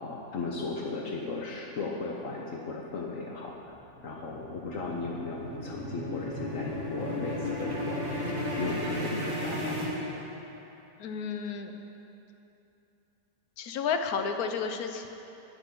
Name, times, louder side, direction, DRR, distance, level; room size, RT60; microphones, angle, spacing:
voice 1, 0.0-3.5 4.0-8.0 8.5-9.9, left 3 dB, 65° left, -1 dB, 1.3 m, -36 dB
sound 1, 3.4-10.7, left 1 dB, 50° right, 2.5 m, -34 dB
voice 2, 11.0-11.7 13.6-15.1, left 6 dB, 85° left, 6 dB, 1.2 m, -31 dB
19.0 x 6.9 x 3.8 m, 2.9 s
omnidirectional pair, 1.5 m